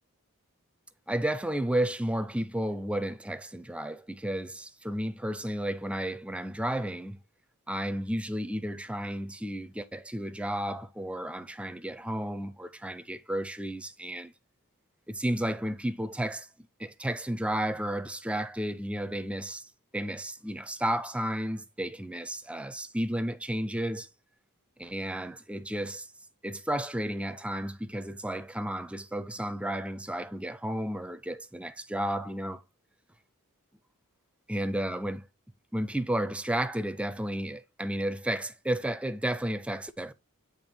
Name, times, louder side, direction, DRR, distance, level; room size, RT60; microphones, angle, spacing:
voice 1, 1.1-7.2 7.7-14.3 15.1-16.5 16.8-24.1 24.8-26.1 26.4-32.6 34.5-35.3 35.7-40.1, right 1 dB, 5° right, 0.4 m, -32 dB
9.0 x 3.2 x 4.3 m
head